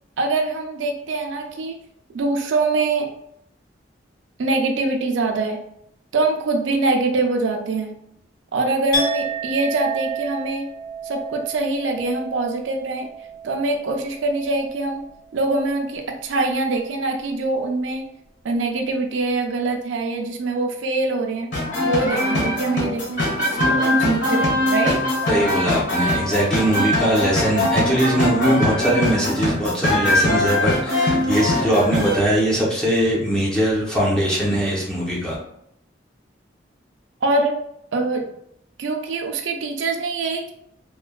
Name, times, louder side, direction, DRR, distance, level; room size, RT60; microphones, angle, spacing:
voice 1, 0.2-1.8 2.1-3.1 4.4-5.6 6.1-7.9 8.5-10.7 11.0-13.1 13.4-15.0 15.3-18.0 18.4-21.5 21.8-25.0 37.2-37.6 37.9-38.3 38.8-40.5, right 3 dB, 85° right, 2 dB, 0.4 m, -23 dB
Chink clink, 8.9-14.9 15.2-15.6, right 3 dB, 25° left, 1.4 m, -31 dB
sound 1, 21.5-32.2, left 1 dB, 80° left, 1.3 m, -21 dB
voice 2, 25.3-35.4, right 1 dB, 5° left, -6 dB, 0.6 m, -21 dB
3.2 x 2.1 x 2.2 m, 0.74 s
head